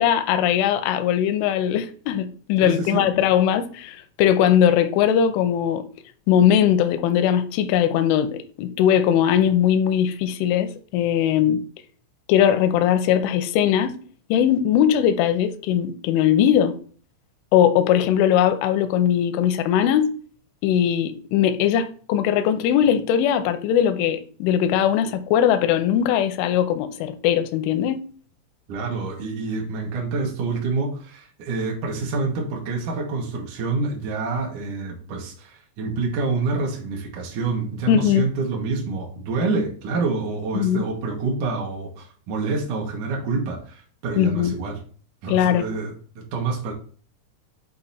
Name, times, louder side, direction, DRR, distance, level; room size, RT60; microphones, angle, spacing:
voice 1, 0.0-5.8 6.3-11.6 12.3-13.9 14.3-16.8 17.5-20.1 20.6-28.0 37.9-38.3 40.5-40.8 44.2-44.6 45.3-45.7, left 9 dB, 85° left, 3.0 m, -20 dB
voice 2, 2.6-3.1 28.7-44.8 45.2-46.7, right 3 dB, 75° right, 1.8 m, -27 dB
8.1 x 2.9 x 4.0 m
omnidirectional pair, 5.7 m